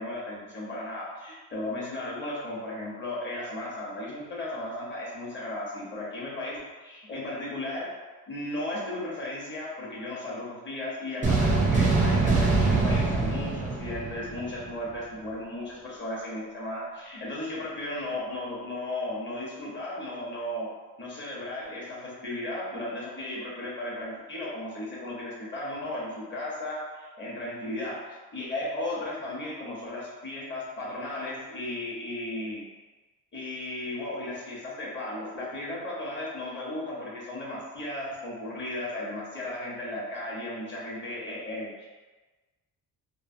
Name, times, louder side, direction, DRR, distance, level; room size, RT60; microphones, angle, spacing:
voice 1, 0.0-7.9 8.3-20.7 21.0-28.0 28.3-32.6 33.3-41.9, left 1 dB, 30° left, -6 dB, 0.8 m, -35 dB
sound 1, 11.2-14.7, right 3 dB, 20° right, 0.4 m, -24 dB
3.1 x 2.1 x 2.5 m, 1.3 s
cardioid pair, 135°, 39 cm